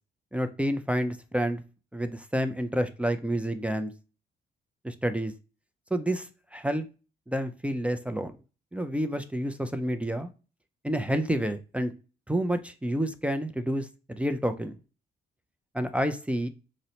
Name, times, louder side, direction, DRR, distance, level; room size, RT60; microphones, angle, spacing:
voice 1, 0.3-1.6 1.9-3.9 4.8-5.3 5.9-6.9 7.3-8.4 8.7-10.3 10.8-11.9 12.3-14.8 15.7-16.5, equal, 5° right, 0.3 m, -29 dB
2.7 x 2.0 x 4.0 m
cardioid pair, 90°, 20 cm